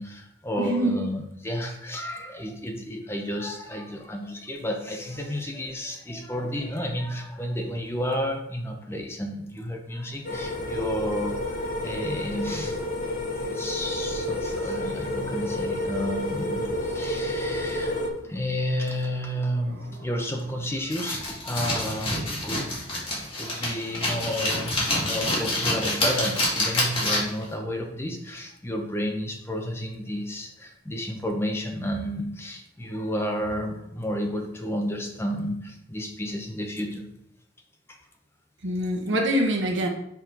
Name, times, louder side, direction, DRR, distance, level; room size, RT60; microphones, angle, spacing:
voice 1, 0.0-12.8 13.4-18.0 18.2-23.1 23.4-37.1 37.9-38.0, equal, 15° left, 2 dB, 0.9 m, -31 dB
voice 2, 0.6-1.1 19.7-19.8 38.6-39.9, right 1 dB, 85° right, 2 dB, 1.1 m, -25 dB
sound 1, 10.2-18.1, left 1 dB, 50° left, 1.1 m, -30 dB
sound 2, 20.9-27.4, left 1 dB, 30° left, 2.1 m, -27 dB
5.8 x 4.4 x 4.6 m, 0.77 s
head